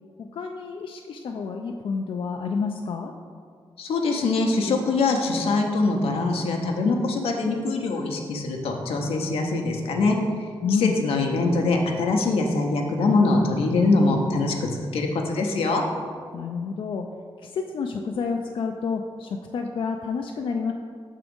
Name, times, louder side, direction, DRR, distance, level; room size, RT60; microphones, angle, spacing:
voice 1, 0.2-3.1 10.6-11.0 16.3-17.1 17.4-20.7, left 5 dB, 65° left, 3 dB, 0.4 m, -29 dB
voice 2, 3.8-10.2 10.8-15.8, left 3 dB, 90° left, 2 dB, 0.7 m, -23 dB
5.9 x 3.7 x 5.2 m, 2.1 s
cardioid pair, 70°, 9 cm